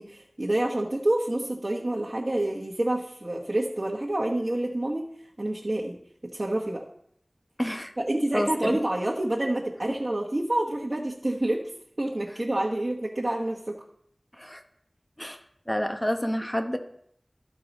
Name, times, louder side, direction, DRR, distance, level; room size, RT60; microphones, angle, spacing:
voice 1, 0.0-5.1 5.4-6.0 6.3-6.8 8.0-11.7 12.0-13.8, right 1 dB, 50° right, -5 dB, 1.2 m, -28 dB
voice 2, 7.6-7.9 8.3-8.8 14.4-14.6 15.2-15.4 15.7-16.8, equal, 15° left, 6 dB, 0.9 m, -28 dB
13.5 x 4.7 x 4.1 m, 0.69 s
wide cardioid pair, 45°, 0 cm